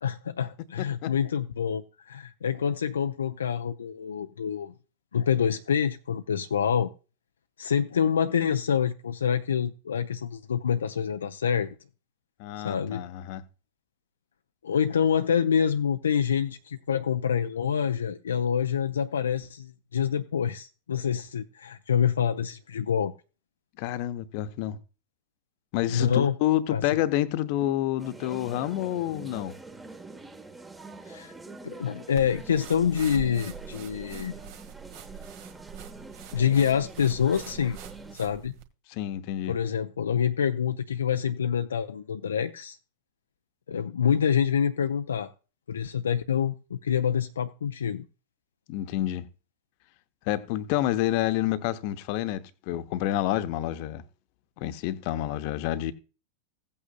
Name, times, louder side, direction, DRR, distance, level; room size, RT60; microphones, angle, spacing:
voice 1, 0.0-4.7 5.1-6.9 7.6-11.8 12.6-13.0 14.6-23.1 25.9-26.4 26.7-26.8 31.1-31.3 31.6-34.4 36.3-37.8 38.1-38.5 39.5-42.8 43.7-45.3 45.7-48.0, left 7 dB, 70° left, 0.5 m, -26 dB
voice 2, 0.8-1.1 12.4-13.4 23.8-24.8 25.7-29.5 38.9-39.5 48.7-49.3 50.3-54.0 54.6-55.9, left 13 dB, 45° left, 0.9 m, -28 dB
sound 1, 28.0-38.2, right 3 dB, 10° right, 1.2 m, -45 dB
sound 2, 32.2-38.7, right 8 dB, 50° right, 1.6 m, -44 dB
16.5 x 8.6 x 2.2 m
figure-of-eight pair, 90°, 0 cm